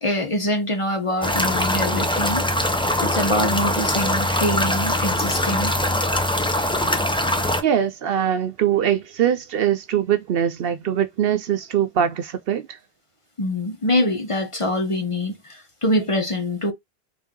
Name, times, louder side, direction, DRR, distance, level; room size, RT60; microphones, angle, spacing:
voice 1, 0.0-2.4 3.0-5.8 13.4-16.7, left 1 dB, 30° left, 0.8 m, -24 dB
sound 1, 1.2-7.6, left 1 dB, 10° left, 0.3 m, -22 dB
voice 2, 7.6-12.7, right 9 dB, 65° right, 0.7 m, -22 dB
3.7 x 2.7 x 3.6 m
omnidirectional pair, 1.1 m